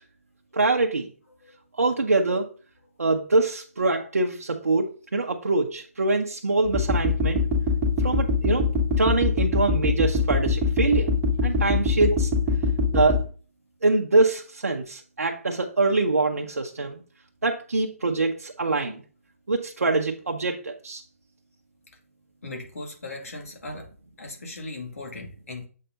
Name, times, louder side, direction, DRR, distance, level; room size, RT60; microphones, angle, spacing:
voice 1, 0.5-1.1 1.8-2.5 3.0-7.4 8.0-8.7 9.0-11.1 11.4-12.3 12.9-13.2 13.8-17.0 17.4-19.0 19.5-21.0, right 3 dB, 80° right, 1 dB, 0.8 m, -24 dB
sound 1, 6.7-13.2, left 3 dB, 15° right, 1.5 m, -22 dB
voice 2, 22.4-23.9 24.2-25.7, left 2 dB, 70° left, 2 dB, 2.2 m, -38 dB
7.5 x 5.6 x 2.7 m, 0.39 s
figure-of-eight pair, 145°, 8 cm